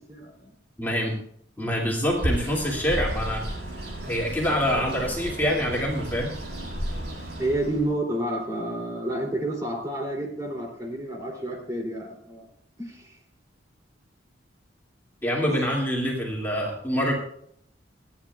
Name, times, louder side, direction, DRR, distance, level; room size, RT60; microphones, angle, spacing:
voice 1, 0.1-0.5 7.4-12.5 12.8-13.2 15.4-15.6, right 1 dB, 20° right, 0 dB, 3.0 m, -30 dB
voice 2, 0.8-1.1 1.6-3.5 4.1-6.3 15.2-17.1, equal, 10° left, -4 dB, 2.5 m, -26 dB
Bird, 2.0-7.9, right 1 dB, 65° right, 6.9 m, -33 dB
29.5 x 10.0 x 2.4 m, 0.69 s
head